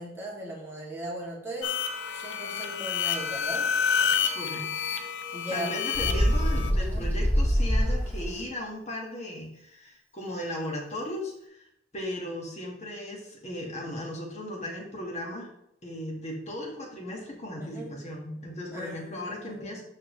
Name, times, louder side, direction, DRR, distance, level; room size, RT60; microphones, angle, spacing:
voice 1, 0.0-1.8 2.1-3.8 5.3-6.3 6.8-7.1 17.6-17.9 18.7-19.8, right 1 dB, 15° right, -4 dB, 2.4 m, -38 dB
sound 1, 1.6-6.7, left 7 dB, 80° left, 0.8 m, -29 dB
voice 2, 4.3-4.9 5.5-11.7 11.9-15.5 15.8-19.8, left 1 dB, 40° left, -1 dB, 1.8 m, -36 dB
Bird, 5.9-8.4, equal, 10° left, 1.9 m, -25 dB
13.0 x 4.3 x 3.2 m, 0.76 s
head